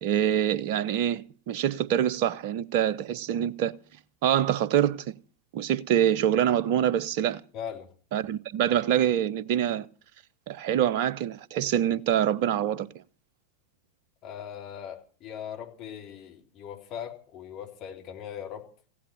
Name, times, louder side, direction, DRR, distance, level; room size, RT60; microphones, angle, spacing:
voice 1, 0.0-3.7 4.2-5.0 5.5-7.4 8.1-9.9 10.5-12.9, right 10 dB, 45° right, 0.8 m, -25 dB
voice 2, 7.5-7.9 14.2-18.6, left 8 dB, 35° left, 3.6 m, -40 dB
16.0 x 11.0 x 6.6 m
figure-of-eight pair, 90°, 0 cm